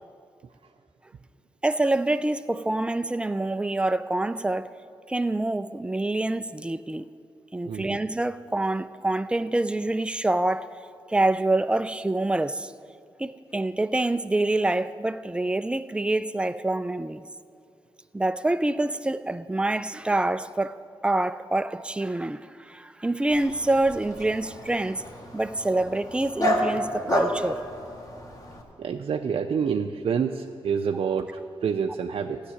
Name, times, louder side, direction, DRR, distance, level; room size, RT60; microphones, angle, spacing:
voice 1, 1.6-4.7 5.1-7.1 7.5-10.7 11.1-12.7 13.2-17.2 18.1-20.8 21.0-25.0 25.3-27.6, right 2 dB, 10° right, 0.4 m, -26 dB
Dog, 23.3-28.6, equal, 35° left, 2.0 m, -30 dB
voice 2, 28.8-32.4, right 6 dB, 70° right, 0.5 m, -27 dB
15.0 x 6.6 x 9.8 m
cardioid pair, 85°, 10 cm